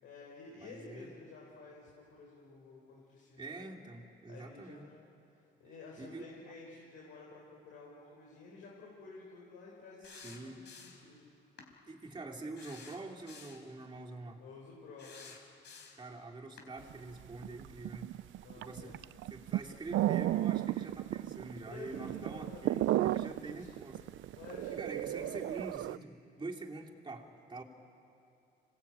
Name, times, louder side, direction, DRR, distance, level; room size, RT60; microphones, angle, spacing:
voice 1, 0.0-3.7 4.3-5.0 5.3-11.3 14.4-15.3 18.4-19.0 21.7-23.7 24.3-25.4, left 4 dB, 90° left, -3 dB, 4.3 m, -52 dB
voice 2, 0.6-1.1 3.4-4.9 6.0-6.3 10.0-10.6 11.9-14.4 15.9-18.2 18.6-18.9 19.3-24.0 24.7-27.6, right 2 dB, 25° right, 0 dB, 3.0 m, -45 dB
sound 1, 10.0-11.1 11.6-11.7 12.5-13.7 15.0-16.1 16.6-16.7, left 5 dB, 65° left, 4.0 m, -52 dB
sound 2, 16.9-17.0 17.2-26.0, right 14 dB, 75° right, 0.5 m, -34 dB
26.5 x 18.5 x 8.9 m, 2.7 s
cardioid pair, 90°, 20 cm